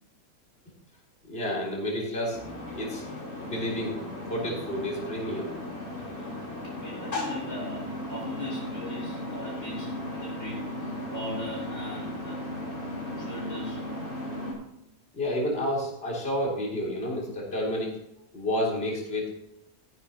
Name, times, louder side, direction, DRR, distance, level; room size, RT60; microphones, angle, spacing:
voice 1, 1.2-2.4 2.7-3.1 3.4-4.0 4.3-5.5 15.1-17.9 18.3-19.3, left 1 dB, 40° left, -4 dB, 3.8 m, -30 dB
sound 1, 2.3-14.5, left 1 dB, 85° left, 4.4 m, -36 dB
voice 2, 6.8-12.5 13.2-13.9, left 1 dB, 55° left, -5 dB, 3.4 m, -40 dB
14.0 x 11.0 x 2.9 m, 0.81 s
omnidirectional pair, 1.5 m